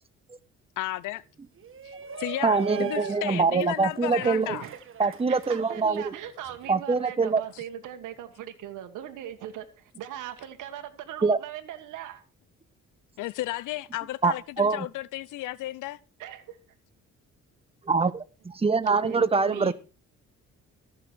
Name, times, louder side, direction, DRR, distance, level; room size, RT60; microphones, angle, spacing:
voice 1, 0.8-1.2 1.8-1.9 2.2-4.7 13.2-16.0, left 16 dB, 90° left, 0.7 m, -33 dB
Shout, 1.6-6.7, right 8 dB, 45° right, 1.3 m, -40 dB
voice 2, 2.4-4.6 5.0-6.1 6.7-7.4 11.2-11.4 14.2-14.9 17.9-18.1 18.6-19.7, right 4 dB, 20° right, 1.0 m, -24 dB
voice 3, 4.2-12.2 16.2-16.6 18.8-19.7, right 11 dB, 85° right, 1.7 m, -39 dB
14.5 x 6.5 x 6.2 m
cardioid pair, 90°, 30 cm